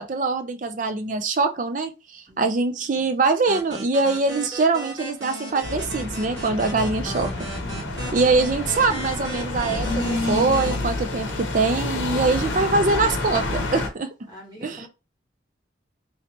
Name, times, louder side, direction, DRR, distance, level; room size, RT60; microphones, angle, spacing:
voice 1, 0.0-7.5 8.1-9.9 10.3-14.1 14.6-14.9, right 3 dB, 40° right, 0.4 m, -23 dB
voice 2, 2.3-2.6 7.9-8.4 12.1-13.1 14.3-14.9, equal, 20° right, 1.3 m, -45 dB
sound 1, 3.5-10.8, right 2 dB, 80° right, 1.4 m, -36 dB
sound 2, 5.6-13.9, left 2 dB, 85° left, 0.7 m, -28 dB
3.1 x 2.9 x 2.8 m
head